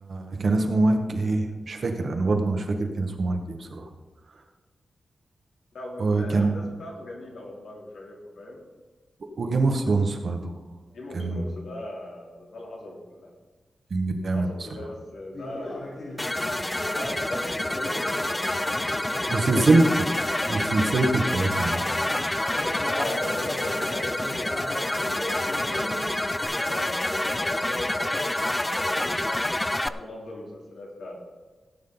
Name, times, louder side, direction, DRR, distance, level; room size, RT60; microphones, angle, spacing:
voice 1, 0.0-3.9 6.0-6.6 9.4-10.5 11.1-11.5 13.9-14.5 19.3-20.1 20.5-21.8, right 3 dB, 55° right, 4 dB, 1.5 m, -24 dB
voice 2, 5.7-8.6 10.9-13.3 14.2-16.4 16.9-19.9 22.9-26.1 26.6-29.4 29.9-31.2, left 1 dB, 80° left, -2 dB, 3.3 m, -39 dB
Conversation, 15.3-21.1 21.5-26.4, left 1 dB, 40° left, 3.8 m, -38 dB
sound 1, 16.2-29.9, left 1 dB, 10° left, 0.4 m, -28 dB
17.0 x 8.7 x 4.0 m, 1.3 s
wide cardioid pair, 145°, 0 cm